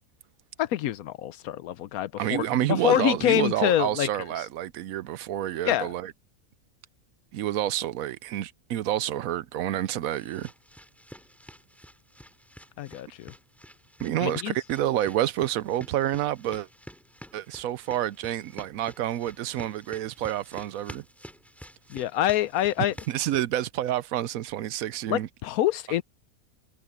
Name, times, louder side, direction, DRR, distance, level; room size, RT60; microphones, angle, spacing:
voice 1, 0.6-4.1 5.6-5.9 12.8-13.3 14.2-14.5 21.9-22.9 25.1-26.0, left 12 dB, 80° left, 1.1 m, -26 dB
voice 2, 2.2-6.1 7.3-10.5 14.0-16.7 17.3-21.0 23.1-25.3, right 12 dB, 75° right, 1.0 m, -28 dB
sound 1, 9.4-23.4, equal, ahead, 2.7 m, -49 dB
omnidirectional pair, 1.5 m